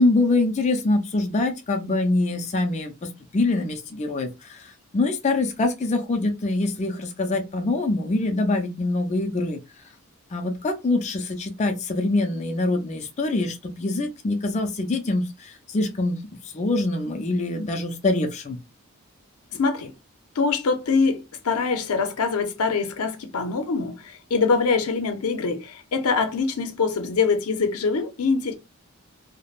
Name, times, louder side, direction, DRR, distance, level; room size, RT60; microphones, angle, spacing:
voice 1, 0.0-9.6 10.3-18.6, left 2 dB, 30° left, 0.4 m, -24 dB
voice 2, 19.5-19.9 20.4-28.6, left 4 dB, 85° left, 0.6 m, -24 dB
3.2 x 2.1 x 2.4 m
head